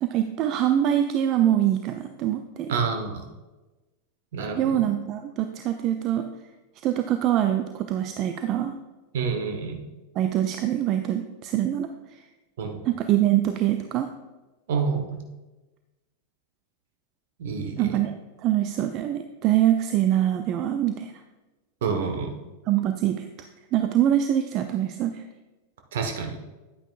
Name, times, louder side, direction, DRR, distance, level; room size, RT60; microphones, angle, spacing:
voice 1, 0.0-2.7 4.6-6.3 6.8-8.7 10.2-11.9 12.8-14.1 17.8-18.1 18.4-21.1 22.7-23.2 23.7-25.2, right 11 dB, 35° right, 7 dB, 0.4 m, -24 dB
voice 2, 2.7-3.2 4.3-4.8 9.1-9.9 12.6-12.9 14.7-15.3 17.4-18.0 21.8-22.3 25.9-26.4, right 5 dB, 55° right, 4 dB, 1.2 m, -28 dB
10.0 x 9.0 x 2.5 m, 1.1 s
figure-of-eight pair, 90°, 0 cm